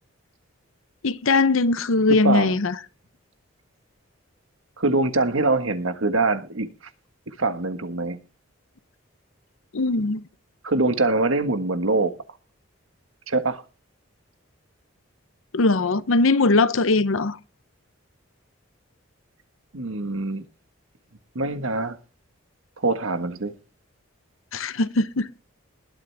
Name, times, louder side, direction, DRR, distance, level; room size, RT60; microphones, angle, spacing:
voice 1, 1.0-2.7 9.7-10.2 15.5-17.4 24.5-25.3, left 3 dB, 75° left, 0.8 m, -20 dB
voice 2, 2.1-2.6 4.8-6.7 7.3-8.2 10.6-12.1 13.3-13.6 19.7-20.4 21.3-22.0 22.8-23.5, right 3 dB, 75° right, 1.5 m, -23 dB
21.0 x 7.8 x 3.5 m
head